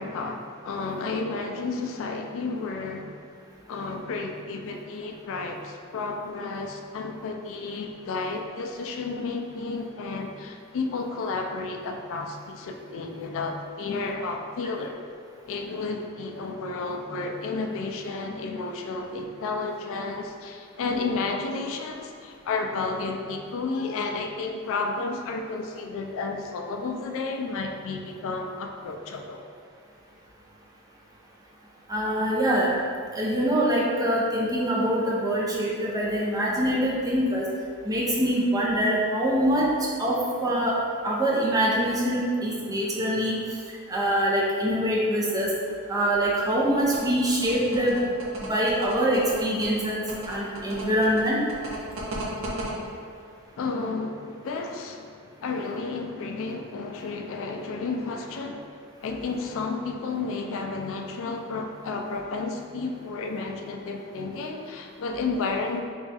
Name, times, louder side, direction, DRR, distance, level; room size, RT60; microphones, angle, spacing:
voice 1, 0.0-3.1 3.7-15.0 15.5-29.4 53.6-58.7 59.0-65.8, left 3 dB, 60° left, 3 dB, 0.3 m, -32 dB
voice 2, 31.9-32.7 33.1-37.4 37.8-39.7 40.0-40.7 41.0-43.4 43.9-45.5 45.9-48.0 48.4-51.4, equal, 15° right, -5 dB, 0.5 m, -24 dB
sound 1, 46.8-52.7, right 2 dB, 60° right, 0.6 m, -36 dB
3.4 x 2.3 x 4.0 m, 2.2 s
head